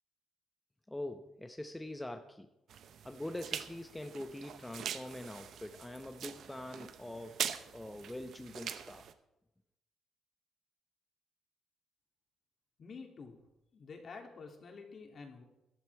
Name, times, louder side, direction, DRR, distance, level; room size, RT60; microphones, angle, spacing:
voice 1, 0.9-2.5 2.8-9.1, left 1 dB, 10° left, 7 dB, 0.7 m, -44 dB
sound 1, 2.7-9.1, right 8 dB, 70° right, 0.9 m, -43 dB
voice 2, 12.8-13.4 13.7-15.4, left 4 dB, 50° left, 3 dB, 2.7 m, -49 dB
14.0 x 11.5 x 4.7 m, 0.92 s
cardioid pair, 90°, 0 cm